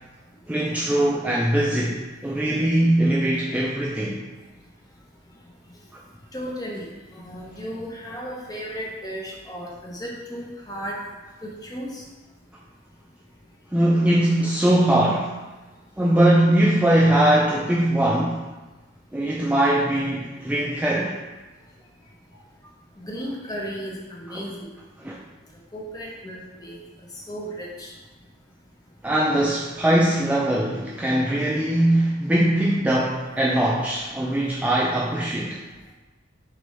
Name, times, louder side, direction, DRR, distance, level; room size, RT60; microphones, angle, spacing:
voice 1, 0.5-4.2 13.7-15.3 16.0-18.4 19.1-21.1 24.3-24.4 25.0-25.1 29.0-35.6, right 1 dB, 5° right, -5 dB, 0.3 m, -21 dB
voice 2, 6.3-6.9 7.1-11.0 11.4-11.9 23.0-24.5 25.7-26.8 27.3-27.9, equal, 20° left, -2 dB, 0.7 m, -34 dB
6.1 x 2.6 x 3.3 m, 1.2 s
head